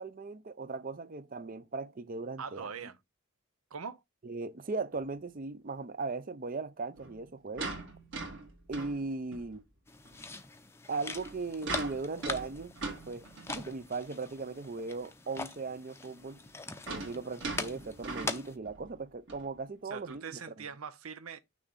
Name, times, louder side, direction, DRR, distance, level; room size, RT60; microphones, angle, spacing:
voice 1, 0.0-2.7 4.2-7.7 8.7-9.6 10.9-13.3 13.5-16.4 16.9-20.2, right 3 dB, 40° right, 0.6 m, -38 dB
voice 2, 2.4-3.0 3.7-4.0 19.8-21.4, right 6 dB, 90° right, 0.7 m, -42 dB
sound 1, 4.9-5.1 7.0-9.6 10.0-10.2 11.0-13.8 14.4-14.5 14.7-14.8 16.2-18.9 19.3-19.5 20.1-20.2, right 3 dB, 60° right, 2.1 m, -41 dB
sound 2, 9.9-18.6, left 3 dB, 10° left, 0.6 m, -42 dB
6.3 x 3.2 x 5.5 m
head